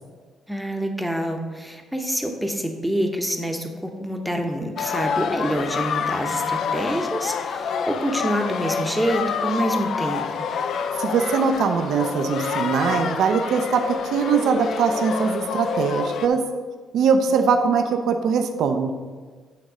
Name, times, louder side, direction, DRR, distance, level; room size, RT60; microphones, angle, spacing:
voice 1, 0.5-10.3, right 1 dB, ahead, 3 dB, 0.8 m, -26 dB
sound 1, 4.8-16.3, left 6 dB, 65° left, 0.4 m, -27 dB
voice 2, 11.0-16.4 16.9-18.9, right 6 dB, 75° right, 5 dB, 0.6 m, -21 dB
8.6 x 3.1 x 4.9 m, 1.4 s
cardioid pair, 100°, 0 cm